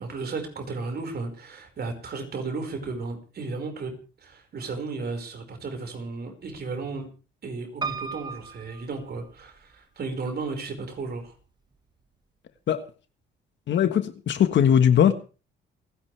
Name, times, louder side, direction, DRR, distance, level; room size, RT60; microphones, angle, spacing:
voice 1, 0.0-3.9 4.2-7.1 7.4-11.3, right 3 dB, 55° right, 5.1 m, -34 dB
Piano, 7.8-9.8 10.4-11.1 11.5-11.6 11.8-11.9, right 5 dB, 20° right, 1.6 m, -36 dB
voice 2, 13.7-15.1, left 9 dB, 65° left, 1.5 m, -20 dB
28.0 x 10.5 x 3.4 m
cardioid pair, 90°, 20 cm